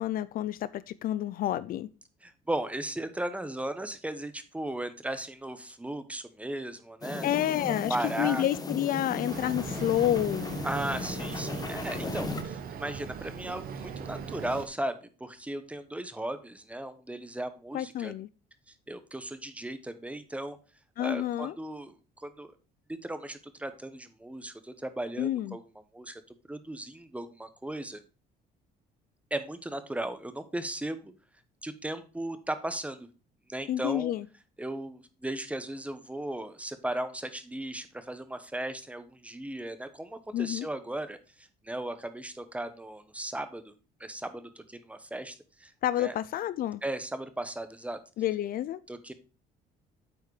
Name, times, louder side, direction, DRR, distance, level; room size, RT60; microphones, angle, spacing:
voice 1, 0.0-1.9 7.2-10.6 17.7-18.3 21.0-21.5 25.2-25.6 33.7-34.3 40.3-40.7 45.8-46.8 48.2-48.8, left 12 dB, 60° left, 0.5 m, -29 dB
voice 2, 2.2-7.3 7.6-8.4 10.6-18.1 18.7-20.6 21.0-22.5 22.9-25.6 25.9-26.2 26.5-28.0 29.3-31.1 31.6-33.1 33.5-34.1 34.6-43.7 44.0-45.7 46.0-46.1 46.8-48.0 48.9-49.1, right 1 dB, 10° right, 1.0 m, -36 dB
sound 1, 7.0-12.4, left 3 dB, 20° left, 1.1 m, -36 dB
Boat Water vehicle, 9.3-14.7, right 6 dB, 60° right, 1.1 m, -39 dB
8.5 x 4.6 x 4.7 m
cardioid pair, 110°, 17 cm